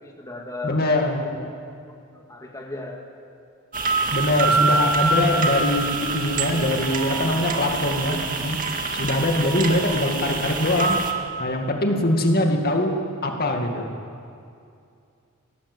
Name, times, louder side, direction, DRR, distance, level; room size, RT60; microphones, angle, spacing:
voice 1, 0.0-0.8 1.9-3.0 4.0-4.2, left 3 dB, 15° left, 0 dB, 2.1 m, -36 dB
voice 2, 0.6-1.5 4.1-8.6 8.9-11.0 11.4-13.9, left 1 dB, 50° left, 3 dB, 2.2 m, -23 dB
sound 1, 3.7-11.1, right 4 dB, 40° right, 2.0 m, -25 dB
22.0 x 18.0 x 8.1 m, 2.5 s
head